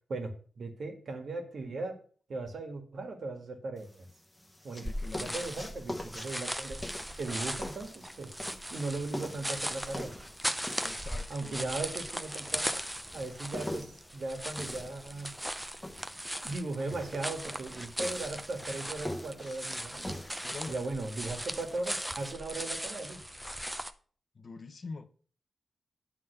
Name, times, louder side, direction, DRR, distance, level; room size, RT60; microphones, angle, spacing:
voice 1, 0.1-2.0 2.3-4.1 4.6-4.9 5.2-6.8 7.2-8.3 8.7-10.1 11.3-12.7 13.1-15.3 16.4-20.2 20.7-23.2, right 3 dB, 60° right, 1.7 m, -38 dB
sound 1, 3.8-22.3, left 1 dB, 10° left, 1.0 m, -45 dB
voice 2, 4.7-5.5 10.8-11.7 19.4-19.6 20.4-20.8 24.3-25.1, left 3 dB, 45° left, 0.8 m, -44 dB
sound 2, 4.8-23.9, equal, 5° right, 0.5 m, -38 dB
10.0 x 3.7 x 6.6 m
wide cardioid pair, 130°, 0 cm